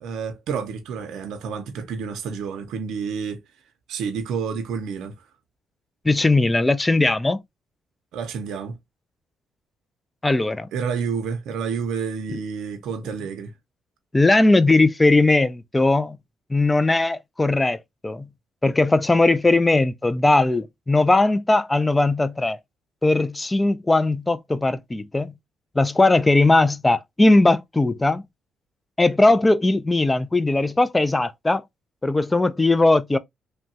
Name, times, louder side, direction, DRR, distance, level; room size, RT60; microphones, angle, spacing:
voice 1, 0.0-3.4 3.9-5.1 8.1-8.8 10.7-13.5, right 6 dB, 80° right, 0.5 m, -29 dB
voice 2, 6.0-7.4 10.2-10.7 12.3-12.4 14.1-16.2 16.5-18.3 18.6-22.6 23.0-25.3 25.8-28.2 29.0-31.6 32.0-33.2, left 2 dB, 15° left, 0.3 m, -19 dB
3.1 x 2.2 x 2.7 m
cardioid pair, 90°, 0 cm